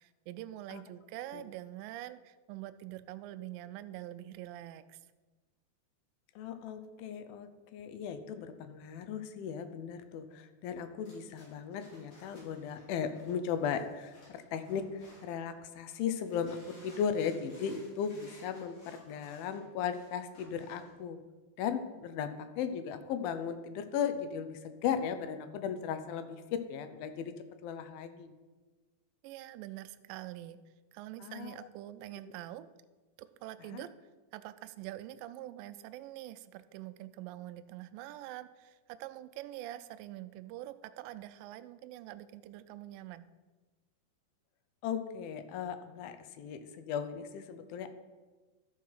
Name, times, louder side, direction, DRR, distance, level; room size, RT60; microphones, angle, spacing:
voice 1, 0.0-5.0 29.2-30.6 30.9-32.7 33.2-33.9 34.3-43.3, right 14 dB, 80° right, 11 dB, 2.1 m, -45 dB
voice 2, 6.4-21.2 21.6-27.3 27.6-28.3 31.2-31.7 33.7-33.8 44.8-47.9, left 7 dB, 85° left, 10 dB, 2.4 m, -37 dB
sound 1, 11.0-15.5 15.9-20.9, left 1 dB, 65° left, 5.5 m, -59 dB
13.5 x 4.7 x 5.7 m, 1.3 s
omnidirectional pair, 4.2 m